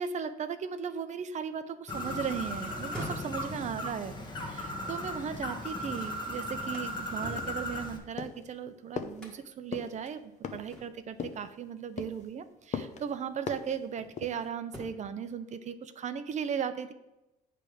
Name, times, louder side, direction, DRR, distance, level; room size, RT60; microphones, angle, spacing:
voice 1, 0.0-4.2 4.5-16.9, right 7 dB, 45° right, 10 dB, 0.5 m, -37 dB
Bird, 1.9-8.0, left 1 dB, 25° left, 1.3 m, -37 dB
sound 1, 2.8-5.8 6.2-8.6 9.2-9.6 10.1-10.2 10.7-11.2 12.4-12.6 13.2-14.3 14.6-15.2, equal, 5° left, 1.5 m, -47 dB
sound 2, 7.4-7.8 8.2-8.5 9.0-9.2 9.7-9.9 10.4-10.8 11.2-11.5 12.0-12.3 12.7-13.0 13.5-13.8 14.2-14.5, left 7 dB, 40° left, 0.6 m, -38 dB
8.7 x 3.4 x 6.2 m, 0.97 s
cardioid pair, 125°, 18 cm